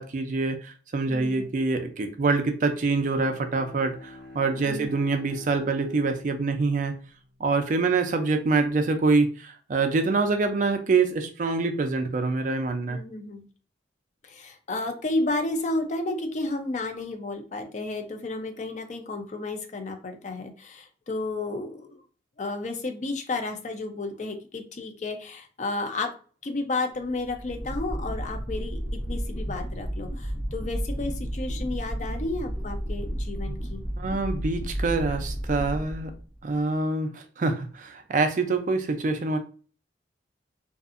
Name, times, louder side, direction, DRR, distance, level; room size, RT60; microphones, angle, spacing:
voice 1, 0.0-6.9 7.4-13.0 34.0-36.1 36.4-39.4, right 3 dB, 45° right, 7 dB, 0.4 m, -25 dB
voice 2, 1.1-1.4 4.6-4.9 12.9-13.5 14.2-22.0 22.4-26.1 26.4-33.8, left 2 dB, 40° left, 6 dB, 0.4 m, -32 dB
Bowed string instrument, 2.8-8.2, left 2 dB, 55° left, 0.9 m, -49 dB
sound 1, 27.0-36.5, equal, 85° left, 1.1 m, -32 dB
2.6 x 2.4 x 2.4 m, 0.40 s
head